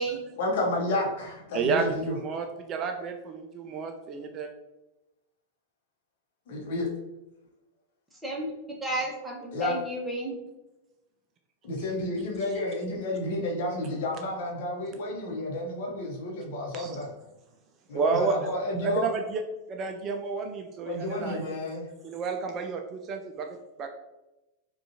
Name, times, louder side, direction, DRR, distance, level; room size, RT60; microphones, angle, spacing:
voice 1, 0.4-2.1 6.5-6.9 9.5-9.8 11.6-17.1 17.9-19.1 20.8-21.9, left 1 dB, 55° left, -1 dB, 0.8 m, -31 dB
voice 2, 1.5-4.5 16.7-17.0 17.9-18.3 18.8-19.4 19.7-21.6 22.0-23.9, right 4 dB, 30° right, 4 dB, 0.3 m, -31 dB
voice 3, 8.8-10.3, right 1 dB, 5° right, -3 dB, 1.0 m, -32 dB
4.9 x 2.3 x 2.7 m, 0.98 s
figure-of-eight pair, 90°, 0 cm